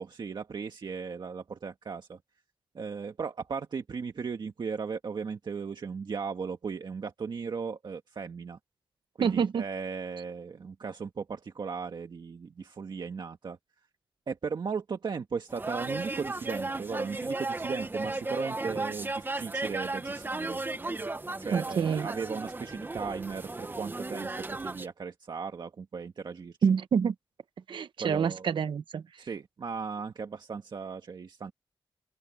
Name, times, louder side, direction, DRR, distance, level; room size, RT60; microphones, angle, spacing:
voice 1, 0.0-2.2 2.7-8.6 9.2-13.6 14.3-20.6 21.4-26.6 28.0-28.5 29.2-31.5, right 5 dB, 65° right, 1.7 m, -37 dB
voice 2, 9.2-9.6 21.5-22.1 26.6-27.1 27.7-29.0, right 7 dB, 85° right, 0.9 m, -27 dB
sound 1, 15.5-24.9, right 2 dB, 25° right, 1.2 m, -35 dB
open air
wide cardioid pair, 85°, 8 cm